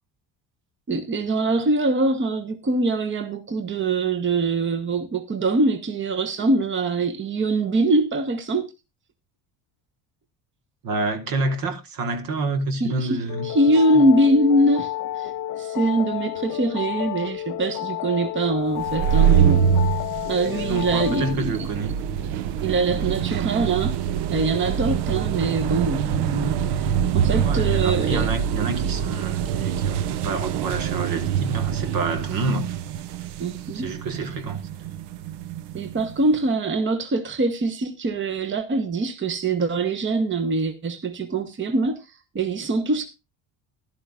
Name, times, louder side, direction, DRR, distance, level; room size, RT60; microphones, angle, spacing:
voice 1, 0.9-8.7 12.8-15.3 15.6-19.6 20.3-21.5 22.6-23.9 24.3-26.6 27.1-28.3 33.4-33.9 35.7-43.0, right 2 dB, 30° right, 1.2 m, -23 dB
voice 2, 10.8-13.5 13.9-14.0 20.5-21.9 27.4-32.8 33.7-34.6, right 3 dB, 60° right, 1.8 m, -28 dB
sound 1, 13.3-21.4, left 13 dB, 50° left, 0.5 m, -31 dB
sound 2, 18.8-36.2, right 8 dB, 80° right, 0.7 m, -25 dB
14.0 x 11.5 x 2.4 m
cardioid pair, 100°, 40 cm